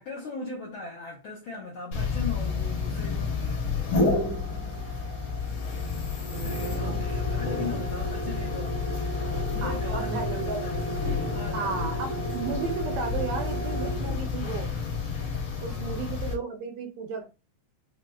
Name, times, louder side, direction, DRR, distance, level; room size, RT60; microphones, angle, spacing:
voice 1, 0.0-4.2 4.6-5.0 6.2-9.3 9.5-10.8 11.3-12.1 15.6-16.3, left 4 dB, 80° left, 1.1 m, -40 dB
sound 1, 1.9-16.3, left 3 dB, 65° left, 1.4 m, -29 dB
voice 2, 6.3-7.0 9.6-10.6 11.5-14.7 15.6-17.2, right 5 dB, 75° right, 1.7 m, -34 dB
4.8 x 2.0 x 2.2 m
omnidirectional pair, 3.4 m